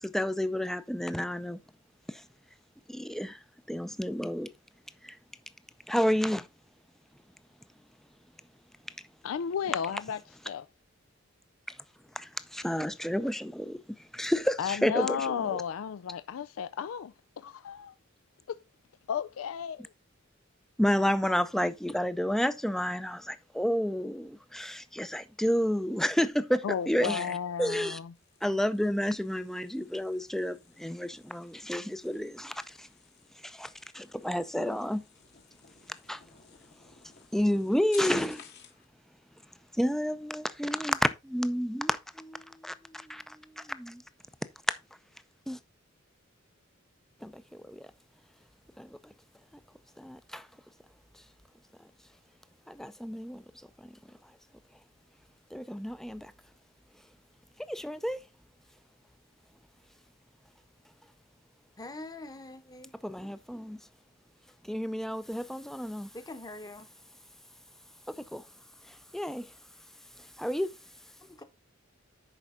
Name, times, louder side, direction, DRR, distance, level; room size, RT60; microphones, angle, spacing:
voice 1, 0.0-1.6 2.1-2.3 2.9-4.5 5.0-5.2 5.9-6.5 11.7-11.8 12.1-15.6 20.8-28.0 28.4-32.9 33.3-35.0 36.1-36.2 36.8-37.0 37.3-38.5 39.7-44.0 45.5-45.6 47.2-47.9 48.8-49.1 50.0-50.5 51.1-51.2 51.8-51.9 52.7-54.3 55.5-56.3 57.6-58.2 63.0-63.8 64.6-66.1 68.1-68.5 68.8-69.5 70.2-70.8, equal, ahead, 0.5 m, -31 dB
voice 2, 9.2-10.2 10.5-10.6 14.6-17.9 18.5-18.6 19.1-19.9 26.6-28.1, left 7 dB, 75° left, 0.4 m, -33 dB
sound 1, 28.1-38.9, left 8 dB, 55° left, 1.5 m, -54 dB
voice 3, 61.8-62.9 66.1-66.9 71.2-71.4, left 2 dB, 20° left, 1.0 m, -44 dB
11.0 x 4.6 x 3.7 m
head